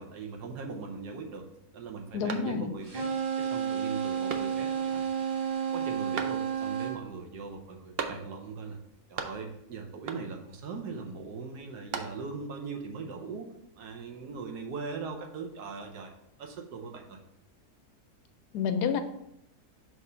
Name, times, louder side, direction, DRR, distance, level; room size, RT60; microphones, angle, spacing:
voice 1, 0.0-1.4 1.7-3.0 3.4-5.1 5.7-8.8 9.1-13.5 13.7-16.1 16.4-17.2, right 4 dB, 90° right, 4 dB, 1.5 m, -40 dB
voice 2, 2.1-2.7 18.5-19.0, left 6 dB, 85° left, 8 dB, 1.2 m, -28 dB
sound 1, 2.3-3.0 3.4-3.5 4.3-4.9 6.1-6.8 8.0-8.6 8.8-9.7 10.1-10.6 11.5-12.5, right 5 dB, 65° right, 0.6 m, -39 dB
sound 2, 2.8-7.0, right 7 dB, 35° right, 1.1 m, -31 dB
5.8 x 3.2 x 5.5 m, 0.79 s
omnidirectional pair, 1.7 m